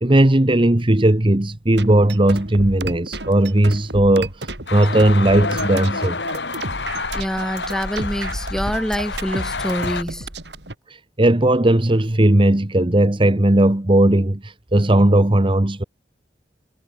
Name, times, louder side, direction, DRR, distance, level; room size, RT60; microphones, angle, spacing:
voice 1, 0.0-6.2 10.9-15.8, right 1 dB, 30° right, 1.2 m, -17 dB
sound 1, 1.7-10.7, right 2 dB, 80° right, 6.3 m, -32 dB
sound 2, 4.7-10.0, left 3 dB, 80° left, 3.9 m, -28 dB
voice 2, 7.1-10.3, equal, 5° left, 3.8 m, -26 dB
head